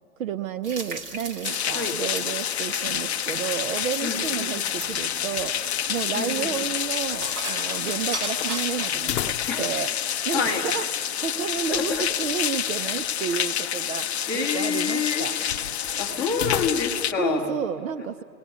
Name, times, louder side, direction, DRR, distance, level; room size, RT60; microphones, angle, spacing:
voice 1, 0.2-5.6 5.9-15.4 17.2-18.2, right 7 dB, 55° right, 11 dB, 0.7 m, -31 dB
sound 1, 0.6-9.1, right 2 dB, 25° right, 1.3 m, -38 dB
sound 2, 1.4-17.1, left 10 dB, 40° left, 0.6 m, -28 dB
sound 3, 3.7-4.6 4.9-5.0 9.0-9.8 10.1-10.2 11.8-12.7 16.3-17.2, left 12 dB, 75° left, 0.7 m, -34 dB
voice 2, 4.0-4.5 6.1-6.5 9.5-9.7 10.3-10.6 11.7-12.1 14.3-15.3 16.0-17.5, left 5 dB, 5° left, -6 dB, 1.6 m, -27 dB
28.5 x 19.5 x 9.3 m, 2.4 s
hypercardioid pair, 165°, 49 cm